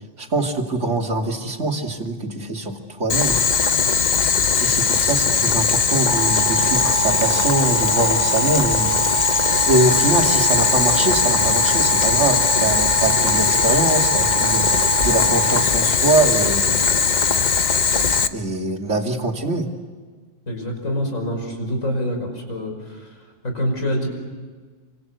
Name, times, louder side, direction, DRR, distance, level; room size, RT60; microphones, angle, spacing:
voice 1, 0.2-3.4 4.6-9.0 9.7-14.7 15.0-16.7 18.3-19.7, right 2 dB, 60° right, 2 dB, 3.0 m, -23 dB
Boiling, 3.1-18.3, left 5 dB, 40° left, 0.9 m, -19 dB
sound 1, 6.1-15.7, right 5 dB, 30° right, 1.6 m, -25 dB
voice 2, 20.5-23.2 23.4-24.1, equal, 80° left, 4 dB, 5.9 m, -26 dB
27.5 x 25.5 x 8.1 m, 1.5 s
omnidirectional pair, 1.4 m